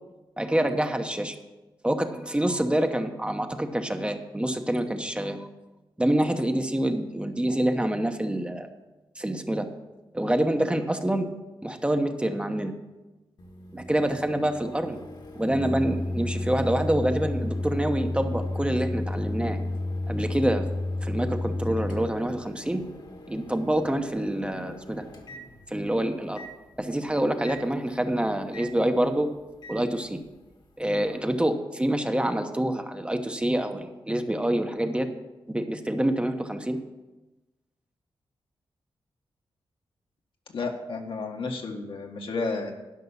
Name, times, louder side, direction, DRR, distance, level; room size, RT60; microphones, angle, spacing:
voice 1, 0.4-1.3 1.8-5.5 6.0-8.7 9.2-9.7 10.1-11.3 11.6-12.7 13.7-15.0 15.3-19.6 20.1-20.7 21.0-22.8 23.3-25.1 25.7-26.5 26.8-29.3 29.7-30.2 30.8-35.1 35.5-36.8, right 1 dB, 10° right, 6 dB, 0.9 m, -26 dB
Microwave oven, 13.4-25.9 26.4-26.5 27.4-27.6 28.5-28.7 29.6-29.8, left 2 dB, 50° left, 1.6 m, -33 dB
voice 2, 40.5-42.7, left 3 dB, 65° left, 2 dB, 1.6 m, -32 dB
12.0 x 5.5 x 7.1 m, 1.1 s
cardioid pair, 85°, 9 cm